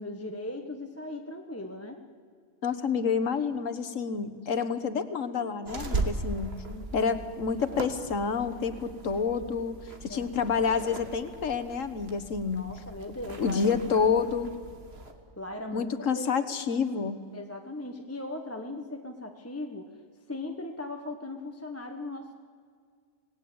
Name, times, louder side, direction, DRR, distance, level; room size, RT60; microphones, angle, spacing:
voice 1, 0.0-2.0 6.3-7.1 7.7-7.8 10.1-10.6 12.5-14.1 15.4-16.6 17.3-19.9 20.3-22.3, left 2 dB, 10° left, 3 dB, 1.2 m, -39 dB
voice 2, 2.6-6.5 6.9-9.8 10.0-12.6 13.4-14.5 15.7-17.2, left 5 dB, 70° left, 11 dB, 1.7 m, -28 dB
sound 1, 5.7-15.1, right 3 dB, 45° right, 2.2 m, -38 dB
27.0 x 19.0 x 8.7 m, 2.1 s
omnidirectional pair, 1.4 m